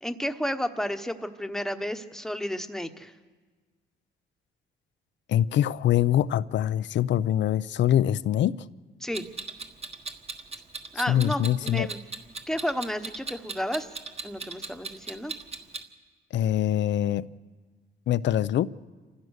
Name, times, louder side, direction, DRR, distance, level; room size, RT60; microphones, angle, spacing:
voice 1, 0.0-3.1 9.0-9.3 10.9-12.0 12.5-13.9 14.2-15.3, equal, ahead, 1.2 m, -32 dB
voice 2, 5.3-8.6 11.1-11.9 16.3-17.3 18.1-18.7, left 11 dB, 65° left, 0.6 m, -24 dB
Clock, 9.1-15.8, right 4 dB, 30° right, 1.6 m, -37 dB
28.0 x 15.5 x 6.6 m
cardioid pair, 90°, 20 cm